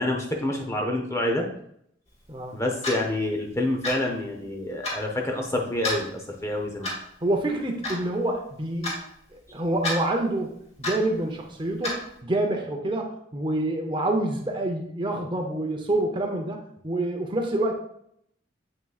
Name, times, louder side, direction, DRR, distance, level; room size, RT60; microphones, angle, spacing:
voice 1, 0.0-1.5 2.5-6.9, left 1 dB, 15° left, 1 dB, 0.7 m, -27 dB
Clock, 2.8-3.0 3.8-4.1 4.8-5.0 5.8-6.0 6.8-7.1 7.8-8.0 8.8-9.0 9.8-10.0 10.8-11.0 11.8-12.0, left 1 dB, 35° left, 2.4 m, -29 dB
voice 2, 7.2-8.9 9.3-10.5 10.8-16.6 16.8-17.7, right 1 dB, 25° right, 3 dB, 0.8 m, -27 dB
7.8 x 5.8 x 2.4 m, 0.71 s
head